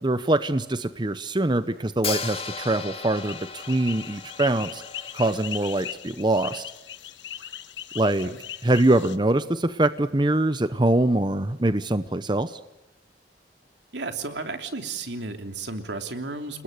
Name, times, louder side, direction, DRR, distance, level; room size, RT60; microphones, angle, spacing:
voice 1, 0.0-4.8 5.1-6.6 7.9-8.3 8.6-12.6, right 2 dB, 25° right, 12 dB, 0.8 m, -23 dB
Hi-hat, 2.0-6.0, left 6 dB, 35° left, 2.3 m, -36 dB
sound 1, 3.1-9.2, left 10 dB, 85° left, 1.4 m, -39 dB
voice 2, 13.9-16.6, right 3 dB, 75° right, 6 dB, 3.1 m, -33 dB
30.0 x 20.5 x 6.7 m, 0.92 s
head